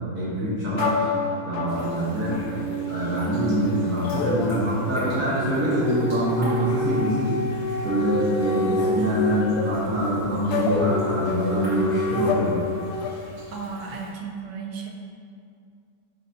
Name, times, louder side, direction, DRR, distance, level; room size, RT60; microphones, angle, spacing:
voice 1, 0.1-1.1 1.4-2.4 2.9-7.4 7.8-12.5, right 1 dB, 65° right, -9 dB, 1.6 m, -25 dB
sound 1, 0.8-13.1, left 2 dB, 90° left, 1.2 m, -28 dB
sound 2, 1.7-14.1, equal, 45° right, 2.0 m, -43 dB
voice 2, 13.5-14.9, right 5 dB, 85° right, 0 dB, 1.3 m, -34 dB
9.7 x 4.0 x 2.7 m, 2.4 s
omnidirectional pair, 1.6 m